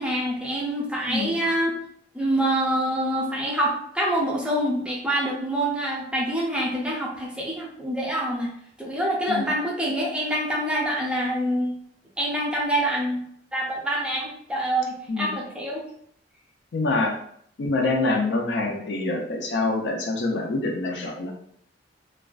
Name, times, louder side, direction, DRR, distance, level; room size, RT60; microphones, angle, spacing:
voice 1, 0.0-1.7 2.1-8.5 8.8-11.8 12.2-13.2 13.5-15.8, right 1 dB, 5° right, -3 dB, 0.5 m, -26 dB
voice 2, 1.1-1.5 9.3-9.5 15.1-15.4 16.7-17.1 17.6-21.3, left 3 dB, 70° left, 1 dB, 0.5 m, -26 dB
2.4 x 2.2 x 2.3 m, 0.66 s
head